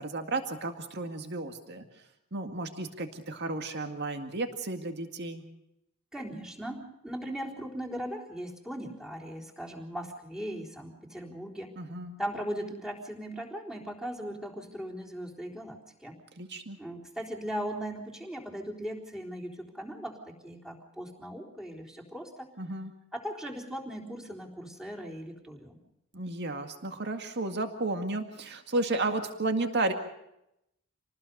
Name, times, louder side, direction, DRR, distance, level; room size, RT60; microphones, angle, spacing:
voice 1, 0.0-1.9 2.3-5.4 11.8-12.2 16.4-16.8 22.6-22.9 26.1-29.9, right 2 dB, 50° right, 6 dB, 2.1 m, -33 dB
voice 2, 6.1-11.7 12.2-16.2 16.8-22.5 23.1-25.8, equal, 5° right, -2 dB, 3.8 m, -38 dB
27.5 x 19.5 x 5.4 m, 0.82 s
head